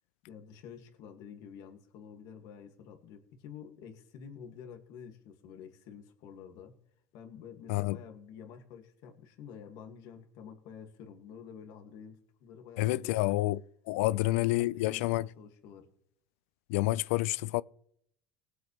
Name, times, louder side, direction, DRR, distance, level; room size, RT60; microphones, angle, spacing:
voice 1, 0.3-6.7 7.1-13.4 14.0-15.9, left 7 dB, 65° left, 2.2 m, -49 dB
voice 2, 12.8-13.6 13.9-15.3 16.7-17.6, left 18 dB, 80° left, 0.4 m, -28 dB
19.0 x 7.9 x 3.3 m
supercardioid pair, 115°, 7 cm